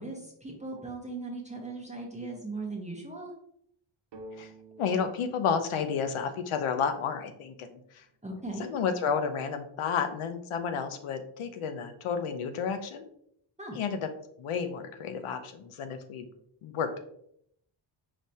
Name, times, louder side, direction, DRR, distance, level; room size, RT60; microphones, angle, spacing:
voice 1, 0.0-3.3 8.2-8.7 13.6-13.8, right 2 dB, 15° right, -1 dB, 0.6 m, -38 dB
sound 1, 4.1-7.8, right 1 dB, 60° right, 0.7 m, -52 dB
voice 2, 4.8-8.0 8.6-13.0 13.7-14.1 14.4-16.3 16.6-17.0, left 6 dB, 90° left, 8 dB, 0.7 m, -31 dB
5.1 x 3.2 x 2.7 m, 0.71 s
wide cardioid pair, 160°, 48 cm